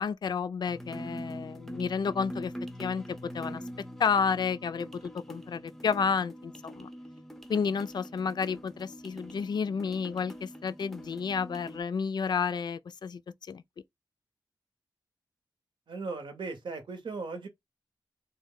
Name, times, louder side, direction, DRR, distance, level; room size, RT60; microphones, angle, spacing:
voice 1, 0.0-2.5 2.8-3.6 4.0-6.9 7.5-13.2 13.5-13.6, left 6 dB, 65° left, 0.3 m, -31 dB
sound 1, 0.7-11.8, equal, 5° left, 0.5 m, -44 dB
voice 2, 15.9-17.5, right 4 dB, 85° right, 0.9 m, -37 dB
3.1 x 2.1 x 3.6 m
wide cardioid pair, 125°, 8 cm